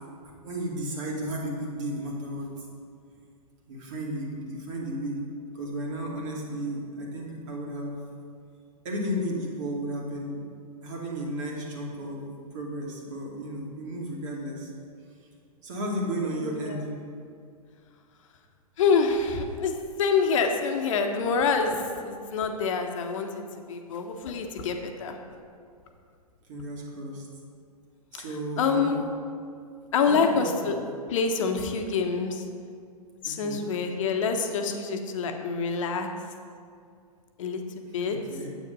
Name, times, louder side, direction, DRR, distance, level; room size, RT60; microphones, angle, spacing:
voice 1, 0.4-2.5 3.7-5.2 5.5-8.0 8.8-10.4 10.8-14.7 15.6-17.0 26.5-27.3 28.1-28.9 30.0-30.8 33.2-33.7 38.1-38.6, equal, 50° right, -1 dB, 2.5 m, -33 dB
voice 2, 16.3-16.8 18.8-23.4 23.7-25.2 28.1-28.2 28.6-29.0 29.9-30.8 31.1-32.4 33.2-36.1 37.4-38.2, left 5 dB, 55° left, 4 dB, 1.2 m, -26 dB
9.3 x 8.4 x 5.4 m, 2.3 s
figure-of-eight pair, 110°, 20 cm